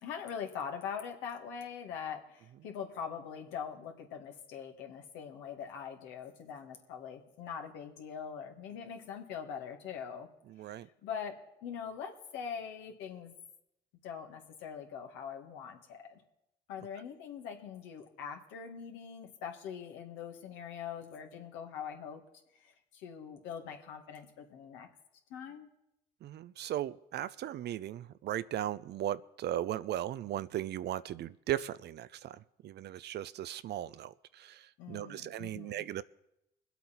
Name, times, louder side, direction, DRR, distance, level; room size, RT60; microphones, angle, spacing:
voice 1, 0.0-10.3 10.7-13.3 14.0-16.2 16.7-22.2 22.6-24.9 25.3-25.7 34.8-35.8, left 7 dB, 80° left, 3 dB, 1.9 m, -43 dB
voice 2, 10.5-10.9 26.2-36.0, right 12 dB, 60° right, 17 dB, 0.6 m, -37 dB
22.5 x 8.2 x 4.3 m, 0.85 s
supercardioid pair, 60°, 19 cm